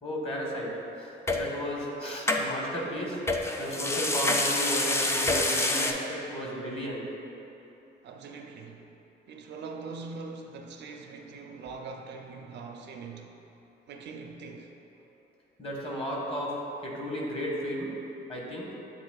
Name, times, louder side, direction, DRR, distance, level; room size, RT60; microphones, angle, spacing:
voice 1, 0.0-3.2 3.6-7.1 15.6-17.9 18.3-18.7, equal, 30° left, -3 dB, 1.1 m, -34 dB
sound 1, 1.3-1.4 2.3-2.4 3.3-5.9, left 2 dB, 15° left, 0.3 m, -26 dB
voice 2, 8.0-8.9 9.3-13.3 13.9-14.7, right 4 dB, 60° right, 3 dB, 0.4 m, -42 dB
7.9 x 3.0 x 2.3 m, 2.9 s
cardioid pair, 90°, 20 cm